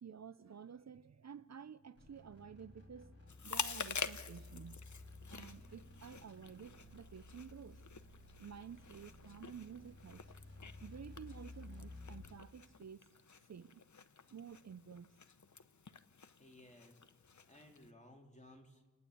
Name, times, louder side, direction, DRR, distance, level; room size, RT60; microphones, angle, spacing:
voice 1, 0.0-3.1 3.4-4.8 5.3-7.8 8.4-10.2 10.8-13.1 13.5-13.8 14.3-15.1, right 7 dB, 65° right, 0.6 m, -52 dB
sound 1, 2.0-12.4, left 2 dB, 50° left, 5.6 m, -55 dB
Chewing mastication, 3.3-17.9, left 5 dB, 80° left, 0.9 m, -48 dB
voice 2, 16.4-17.1 17.4-18.9, left 1 dB, 25° left, 3.9 m, -59 dB
30.0 x 10.5 x 8.4 m
wide cardioid pair, 55°, 29 cm